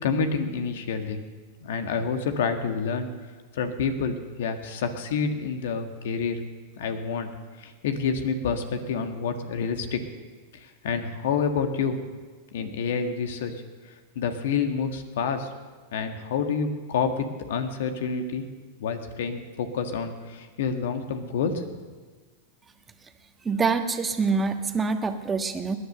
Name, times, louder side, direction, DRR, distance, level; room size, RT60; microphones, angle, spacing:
voice 1, 0.0-1.2 1.6-3.1 3.5-6.4 6.8-7.3 7.6-10.0 10.8-12.0 12.5-13.5 14.1-15.5 15.9-18.4 18.8-21.7, left 5 dB, 70° left, 7 dB, 1.7 m, -28 dB
voice 2, 23.4-25.7, right 4 dB, 20° right, 7 dB, 1.4 m, -25 dB
19.5 x 10.5 x 6.7 m, 1.4 s
hypercardioid pair, 105°, 0 cm